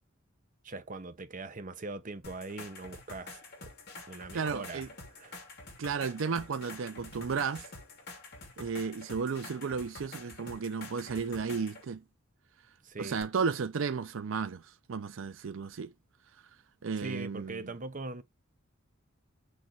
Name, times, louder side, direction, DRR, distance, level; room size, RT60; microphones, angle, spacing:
voice 1, 0.6-3.4 4.1-4.8 5.1-5.4 12.8-13.2 17.0-18.2, right 3 dB, 40° right, 0.9 m, -41 dB
sound 1, 2.2-11.8 13.2-13.3, left 3 dB, 55° left, 2.9 m, -48 dB
voice 2, 4.3-4.9 5.8-7.7 8.6-12.0 13.0-15.9 16.8-17.7, right 5 dB, 70° right, 0.5 m, -33 dB
6.5 x 3.3 x 4.5 m
head